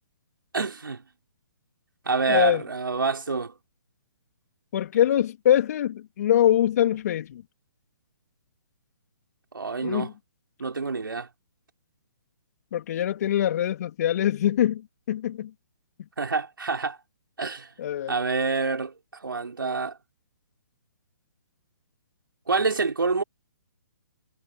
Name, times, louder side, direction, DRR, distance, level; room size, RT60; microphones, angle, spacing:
voice 1, 0.5-1.0 2.0-3.5 9.5-10.1 10.6-11.3 16.2-17.0 17.4-17.7 18.1-20.0 22.5-23.2, right 4 dB, 80° right, 4.8 m, -27 dB
voice 2, 2.3-2.6 4.7-7.4 9.8-10.1 12.7-15.5 17.8-18.2, left 11 dB, 50° left, 2.8 m, -23 dB
figure-of-eight pair, 135°, 11 cm